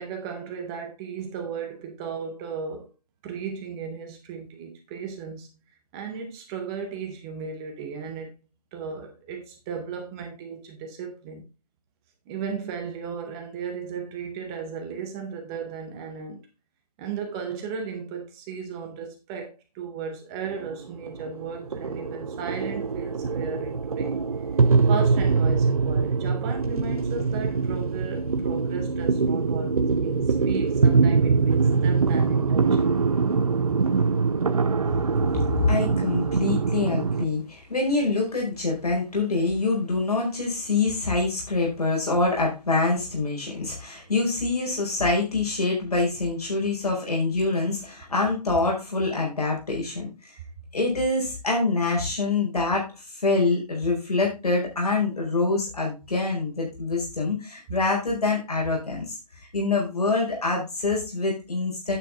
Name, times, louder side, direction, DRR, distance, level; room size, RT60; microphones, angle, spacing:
voice 1, 0.0-2.9 3.2-5.5 5.9-8.3 8.7-11.5 12.3-16.5 17.0-24.2 24.9-33.0 33.6-33.7, right 6 dB, 5° right, 0.6 m, -35 dB
sound 1, 20.4-37.2, right 4 dB, 60° right, 0.8 m, -23 dB
voice 2, 35.3-50.4 50.7-59.1 59.5-62.0, left 3 dB, 65° left, 4.7 m, -25 dB
9.2 x 6.9 x 3.6 m
figure-of-eight pair, 160°, 21 cm